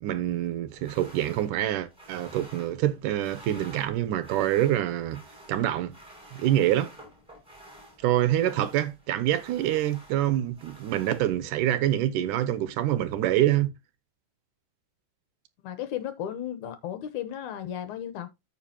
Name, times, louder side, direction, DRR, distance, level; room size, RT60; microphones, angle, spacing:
voice 1, 0.0-5.2 5.5-5.9 6.3-6.9 8.0-13.7, right 12 dB, 80° right, 2.2 m, -26 dB
sound 1, 0.7-11.7, right 1 dB, ahead, 5.2 m, -51 dB
voice 2, 15.6-18.3, left 10 dB, 70° left, 2.1 m, -34 dB
13.5 x 5.0 x 2.8 m
omnidirectional pair, 3.9 m